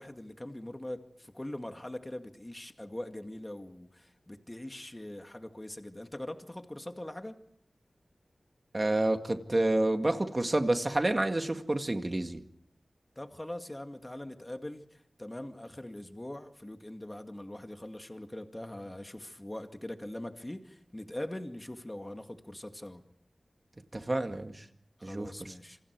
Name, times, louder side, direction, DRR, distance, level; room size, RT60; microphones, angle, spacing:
voice 1, 0.0-7.4 13.2-23.0 25.0-25.8, left 1 dB, 20° left, 6 dB, 2.2 m, -42 dB
voice 2, 8.7-12.4 23.9-24.6 25.0-25.3, right 2 dB, 30° right, 6 dB, 1.9 m, -29 dB
27.5 x 25.5 x 4.8 m, 0.66 s
wide cardioid pair, 75°, 0 cm